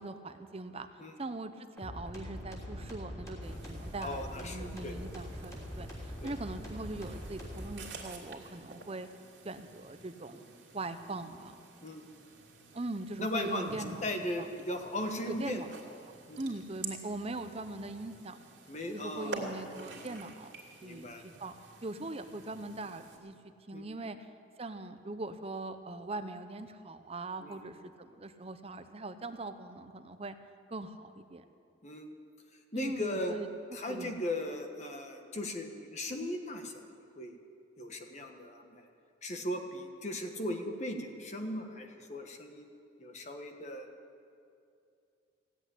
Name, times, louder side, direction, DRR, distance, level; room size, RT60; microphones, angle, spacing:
voice 1, 0.0-0.9 1.2-9.1 9.4-10.4 10.7-11.5 12.7-14.0 14.4-14.5 15.3-15.7 16.4-18.4 18.9-20.5 20.8-21.5 21.8-23.3 23.7-24.2 24.6-30.3 30.7-31.4 32.7-33.5 33.8-34.1, right 2 dB, 35° right, 9 dB, 0.7 m, -41 dB
sound 1, 1.8-7.7, equal, 15° left, 3.4 m, -43 dB
sound 2, 3.4-23.2, right 3 dB, 70° right, 2.7 m, -49 dB
voice 2, 4.0-5.0 6.2-6.3 11.8-12.0 13.2-15.7 16.3-16.4 18.7-19.4 19.8-20.2 20.8-21.2 23.7-23.8 27.4-27.6 31.8-32.1 32.7-33.4 33.7-36.8 37.1-37.4 37.8-38.9 39.2-43.9, left 1 dB, 40° left, 5 dB, 1.4 m, -38 dB
16.5 x 8.2 x 10.0 m, 2.5 s
head